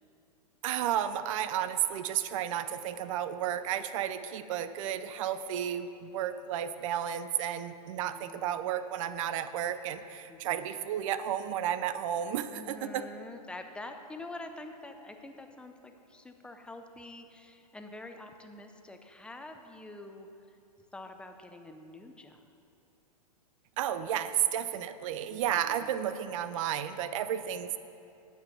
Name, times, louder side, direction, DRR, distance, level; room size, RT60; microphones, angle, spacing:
voice 1, 0.6-13.1 23.8-27.8, right 10 dB, 55° right, 12 dB, 0.5 m, -32 dB
voice 2, 7.6-8.7 10.3-10.9 12.5-20.3 20.9-22.4 25.3-26.1, left 2 dB, 5° left, 5 dB, 0.5 m, -47 dB
9.2 x 6.9 x 5.9 m, 2.7 s
hypercardioid pair, 120°, 21 cm